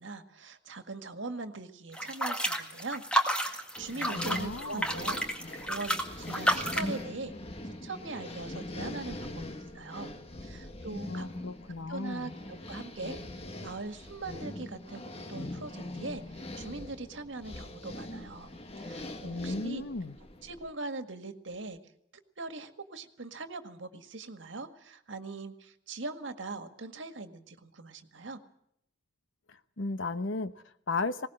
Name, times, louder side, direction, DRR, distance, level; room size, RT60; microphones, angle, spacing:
voice 1, 0.0-5.2 5.6-7.3 7.8-10.1 10.4-11.3 11.9-13.2 13.6-18.5 18.8-19.9 20.4-21.8 22.4-28.4, right 3 dB, 80° right, 8 dB, 1.8 m, -41 dB
sound 1, 1.9-7.0, right 1 dB, 5° left, 1.9 m, -31 dB
sound 2, 3.8-20.7, left 1 dB, 30° left, 1.4 m, -42 dB
voice 2, 4.1-4.9 11.1-12.3 19.2-20.2 29.8-31.3, left 3 dB, 85° left, 12 dB, 1.0 m, -35 dB
20.5 x 19.0 x 7.7 m, 0.73 s
head